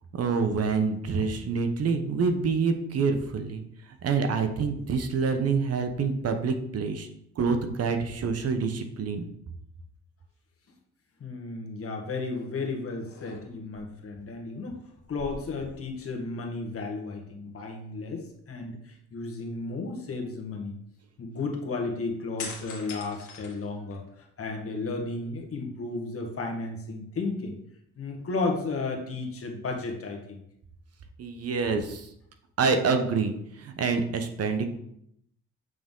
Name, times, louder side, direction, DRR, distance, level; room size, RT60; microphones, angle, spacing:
voice 1, 0.1-3.6 4.0-7.1 7.4-9.3 31.2-32.1 32.6-34.7, right 5 dB, 55° right, 7 dB, 0.8 m, -27 dB
voice 2, 11.2-14.8 15.1-20.8 21.2-27.6 28.0-30.4, left 3 dB, 50° left, 1 dB, 1.5 m, -33 dB
sound 1, 12.3-12.6 13.0-13.8 15.0-16.3 16.6-16.7 22.4-24.2 24.7-25.6, left 5 dB, 75° left, 1.6 m, -43 dB
7.8 x 3.7 x 3.7 m, 0.74 s
cardioid pair, 90°, 30 cm